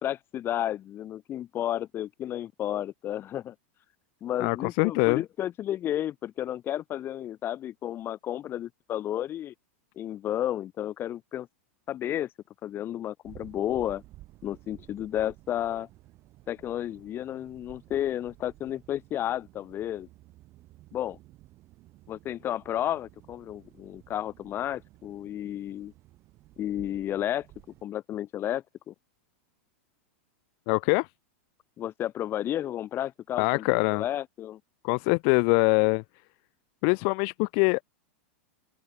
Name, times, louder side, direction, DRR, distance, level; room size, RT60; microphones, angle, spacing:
voice 1, 0.0-3.5 4.2-9.5 10.0-11.5 11.9-12.3 12.6-14.0 14.4-15.9 16.5-20.1 20.9-21.2 22.1-25.9 26.6-27.5 27.8-28.9 31.8-33.7 33.9-34.6, left 11 dB, 35° left, 2.0 m, -32 dB
voice 2, 4.4-5.2 30.7-31.1 33.4-34.0 34.8-36.0 36.8-37.8, left 40 dB or more, 50° left, 0.6 m, -23 dB
sound 1, 13.2-27.8, right 17 dB, 45° right, 6.1 m, -54 dB
open air
hypercardioid pair, 110°, 7 cm